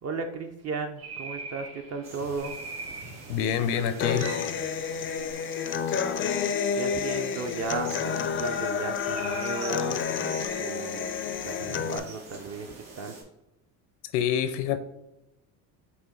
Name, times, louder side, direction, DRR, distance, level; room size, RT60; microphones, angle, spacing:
voice 1, 0.0-2.6 6.7-10.1 10.5-11.1 11.4-12.7 13.0-13.2, right 4 dB, 40° right, 5 dB, 0.5 m, -35 dB
sound 1, 1.0-13.0, right 3 dB, 60° right, 1.4 m, -46 dB
sound 2, 2.0-13.2, right 3 dB, 85° right, 1.6 m, -45 dB
voice 2, 3.3-4.4 14.1-14.8, left 9 dB, 75° left, 12 dB, 0.6 m, -26 dB
Human voice / Acoustic guitar, 4.0-12.0, left 7 dB, 35° left, 0.4 m, -30 dB
5.8 x 2.1 x 3.7 m, 0.88 s
supercardioid pair, 100°, 40 cm